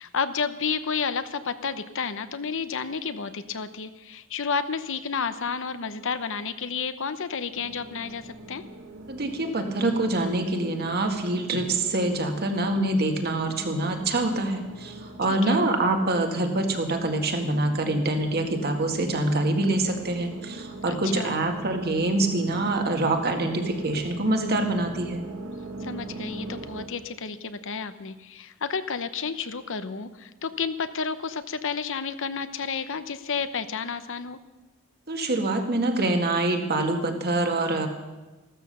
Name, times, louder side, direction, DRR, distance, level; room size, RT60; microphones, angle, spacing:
voice 1, 0.0-8.6 15.4-15.6 20.9-21.4 25.8-34.4, left 5 dB, 65° left, 11 dB, 0.9 m, -31 dB
sound 1, 7.5-26.9, right 2 dB, 90° right, 2.2 m, -41 dB
voice 2, 9.1-25.2 35.1-37.9, right 2 dB, 50° right, 4 dB, 1.9 m, -25 dB
14.5 x 13.0 x 6.8 m, 1.2 s
head